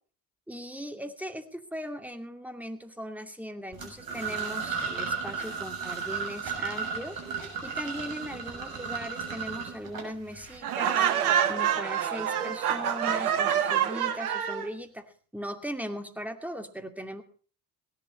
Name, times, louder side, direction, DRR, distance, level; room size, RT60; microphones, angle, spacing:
voice 1, 0.5-11.1 11.5-17.2, equal, 5° right, 7 dB, 2.4 m, -39 dB
sound 1, 3.7-10.6, right 5 dB, 50° right, 6.7 m, -35 dB
Laughter, 10.6-14.7, right 9 dB, 85° right, 1.3 m, -26 dB
17.0 x 11.5 x 5.4 m, 0.42 s
hypercardioid pair, 55°, 43 cm